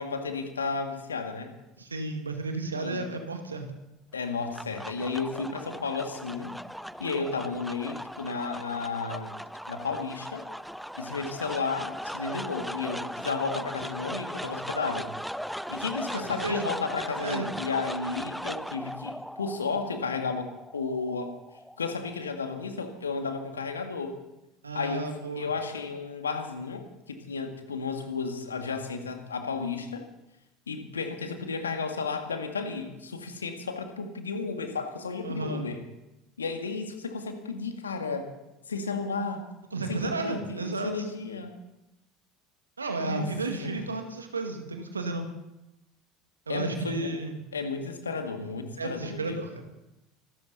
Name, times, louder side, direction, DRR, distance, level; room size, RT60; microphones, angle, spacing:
voice 1, 0.0-1.5 2.8-3.0 4.1-6.6 7.0-9.4 9.7-10.5 11.0-15.1 15.7-21.3 21.8-24.1 24.7-25.1 25.4-30.0 30.7-35.8 36.4-38.3 38.7-39.5 39.9-41.5 43.0-43.3 43.6-43.8 46.5-47.2 47.5-49.4, left 4 dB, 80° left, 6 dB, 1.9 m, -33 dB
voice 2, 1.8-3.7 14.0-14.4 16.1-16.6 17.2-17.5 24.6-25.5 35.2-35.7 39.7-40.9 42.8-45.3 46.5-47.4 48.8-49.6, right 3 dB, 85° right, 5 dB, 2.1 m, -33 dB
sound 1, 4.2-22.5, equal, ahead, 0.6 m, -38 dB
25.0 x 13.5 x 4.1 m, 0.93 s
figure-of-eight pair, 70°, 0 cm